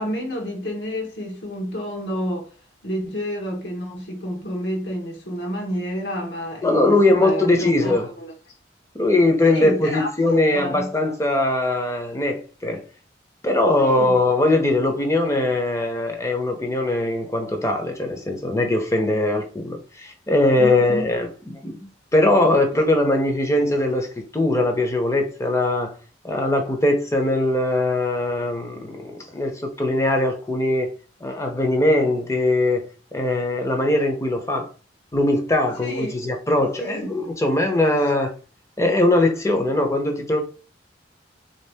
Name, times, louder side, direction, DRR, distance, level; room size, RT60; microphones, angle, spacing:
voice 1, 0.0-2.5 2.8-8.3 9.5-10.9 13.8-14.2 20.6-21.1 35.8-36.2 36.8-37.1, equal, 70° left, 1.0 m, -29 dB
voice 2, 6.6-8.1 8.9-12.8 13.4-25.9 26.2-30.9 31.2-32.9 33.1-34.7 35.1-38.3 38.8-40.4, left 2 dB, 15° left, 0.6 m, -21 dB
3.5 x 2.8 x 3.4 m
head